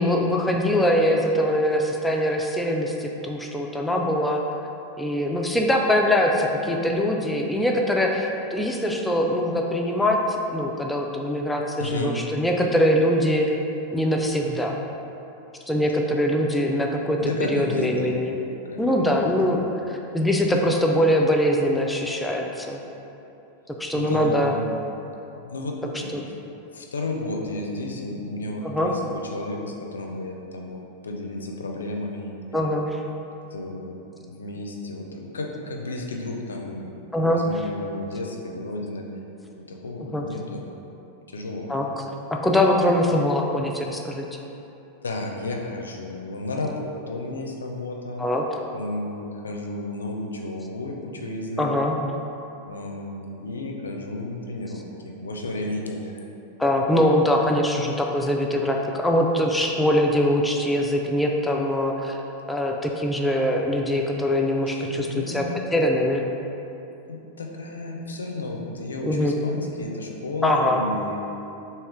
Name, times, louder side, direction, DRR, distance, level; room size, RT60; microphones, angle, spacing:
voice 1, 0.0-4.4 5.0-13.5 13.9-14.8 15.7-17.2 17.5-18.4 18.8-19.6 19.9-22.8 23.7-24.5 26.1-26.2 28.6-28.9 32.5-33.0 37.1-37.4 40.1-40.2 41.7-41.8 42.3-44.2 48.2-48.6 51.6-52.0 56.6-62.2 62.5-65.4 65.7-66.2 69.0-69.3 70.4-70.8, left 1 dB, 5° left, 0 dB, 0.3 m, -22 dB
voice 2, 11.8-12.2 17.2-18.3 18.7-19.6 23.9-24.7 25.3-26.4 26.7-32.7 33.5-34.0 34.3-39.1 39.6-40.6 41.3-41.7 45.0-48.2 48.7-51.7 52.6-56.2 64.7-65.7 67.1-71.2, left 2 dB, 75° left, 1 dB, 0.4 m, -32 dB
3.1 x 2.8 x 3.5 m, 2.8 s
figure-of-eight pair, 90°, 0 cm